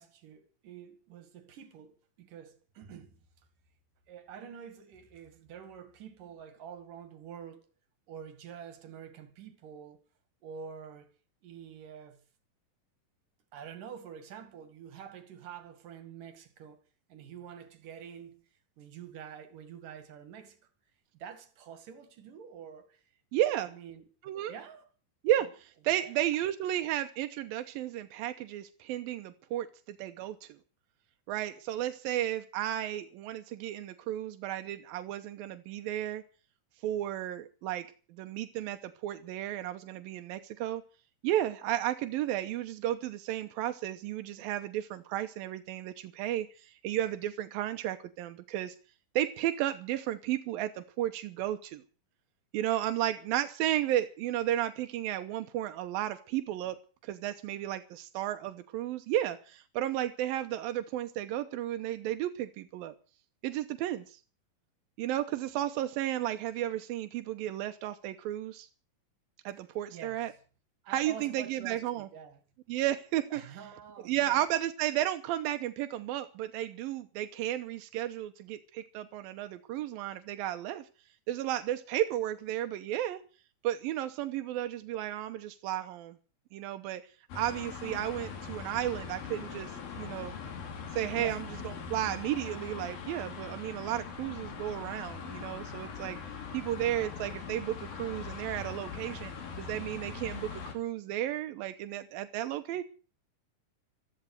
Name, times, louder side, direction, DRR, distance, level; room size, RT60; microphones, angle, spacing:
voice 1, 0.0-3.2 4.1-7.7 8.1-10.0 10.4-11.1 11.4-12.3 13.5-16.8 17.1-18.4 18.8-20.6 21.1-23.0 23.4-24.1 24.5-24.9 25.4-25.5 25.9-26.1 69.9-70.4 70.8-72.4 73.3-74.4 91.1-91.5, right 8 dB, 70° right, 3.6 m, -47 dB
voice 2, 23.3-23.7 24.2-24.5 25.2-30.6 31.3-36.2 36.8-40.8 41.2-48.8 49.2-51.8 52.5-56.8 57.0-62.9 63.4-64.2 65.0-68.7 69.4-70.3 70.9-72.1 72.7-73.4 74.1-80.9 81.3-83.2 83.6-86.2 86.5-87.0 87.4-89.7 90.0-90.3 90.9-96.2 96.5-99.3 99.6-102.8, right 12 dB, 90° right, 2.8 m, -33 dB
sound 1, 87.3-100.7, left 6 dB, 85° left, 4.4 m, -41 dB
15.0 x 14.0 x 6.6 m
omnidirectional pair, 4.0 m